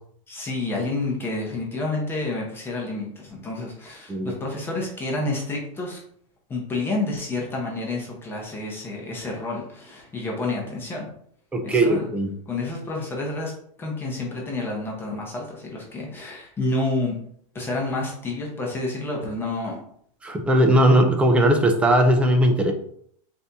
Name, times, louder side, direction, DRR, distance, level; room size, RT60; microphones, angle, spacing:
voice 1, 0.3-6.0 6.5-11.1 11.6-12.1 12.5-13.5 13.8-17.2 17.5-19.8, left 2 dB, 15° left, -2 dB, 0.7 m, -29 dB
voice 2, 11.5-12.3 20.2-22.7, right 1 dB, 5° right, 5 dB, 0.3 m, -18 dB
4.1 x 2.6 x 3.4 m, 0.64 s
supercardioid pair, 165°, 17 cm